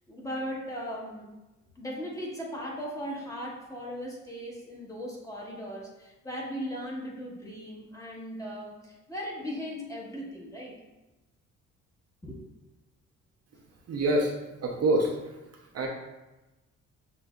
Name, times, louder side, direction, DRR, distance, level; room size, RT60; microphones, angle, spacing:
voice 1, 0.1-1.3 1.7-10.8 12.2-12.4, equal, 10° left, -4 dB, 1.2 m, -38 dB
voice 2, 13.9-14.3 14.6-15.1 15.7-15.9, right 1 dB, 55° right, 1 dB, 0.7 m, -25 dB
6.7 x 2.7 x 2.3 m, 1.1 s
cardioid pair, 90°, 30 cm